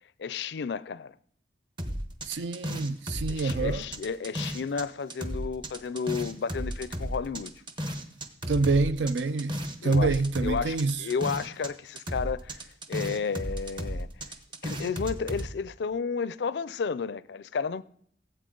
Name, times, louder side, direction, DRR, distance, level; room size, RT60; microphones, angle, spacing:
voice 1, 0.2-1.1 3.3-7.5 9.8-10.1 10.4-12.6 12.9-14.3 14.6-17.8, left 5 dB, 70° left, 0.4 m, -32 dB
sound 1, 1.8-4.8 5.1-11.7 11.9-15.5, equal, 25° right, 0.9 m, -34 dB
voice 2, 2.3-3.8 8.5-9.6 9.8-11.0, right 3 dB, 85° right, 0.5 m, -26 dB
17.0 x 8.1 x 3.8 m
head